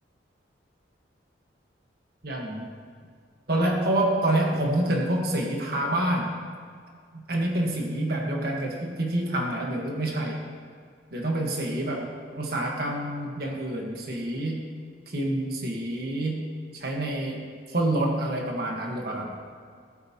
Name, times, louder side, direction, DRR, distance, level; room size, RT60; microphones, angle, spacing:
voice 1, 2.2-2.7 3.5-6.4 7.1-10.4 11.1-14.6 15.1-16.4 16.7-19.4, right 1 dB, 55° right, 0 dB, 1.5 m, -27 dB
19.0 x 8.8 x 3.0 m, 2.1 s
head